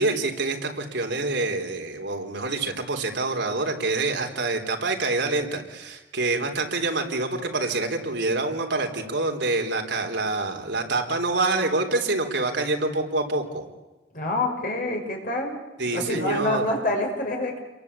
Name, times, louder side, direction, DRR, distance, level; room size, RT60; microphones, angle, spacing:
voice 1, 0.0-13.6 15.8-16.7, right 2 dB, 60° right, 3 dB, 3.8 m, -26 dB
voice 2, 14.1-15.6 15.9-17.6, left 2 dB, 45° left, 2 dB, 6.2 m, -27 dB
29.0 x 23.0 x 8.5 m, 1.1 s
head